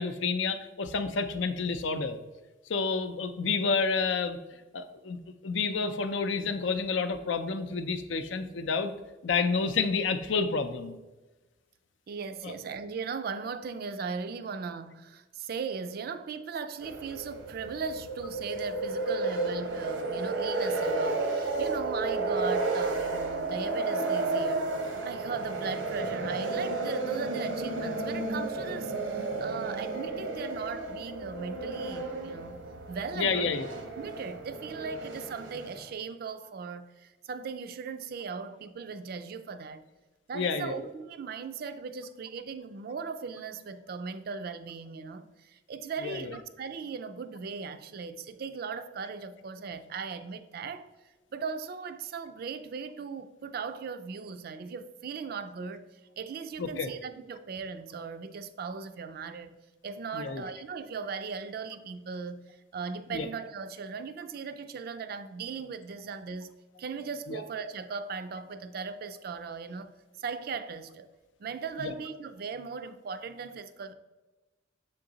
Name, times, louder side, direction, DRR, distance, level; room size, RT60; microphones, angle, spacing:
voice 1, 0.0-2.2 2.7-4.4 4.7-8.9 9.2-11.0 12.4-12.5 33.2-33.7 40.3-40.9 46.0-46.3 56.6-56.9 60.1-60.4 63.1-63.3 67.3-67.4 71.8-71.9, left 4 dB, 75° left, 0.5 m, -29 dB
voice 2, 12.1-32.6 32.9-33.6 34.0-39.8 40.3-50.9 51.3-59.6 59.8-71.1 71.4-73.9, right 5 dB, 50° right, 0.4 m, -38 dB
sound 1, 16.8-35.9, right 3 dB, 85° right, 0.8 m, -32 dB
7.0 x 3.8 x 3.9 m
head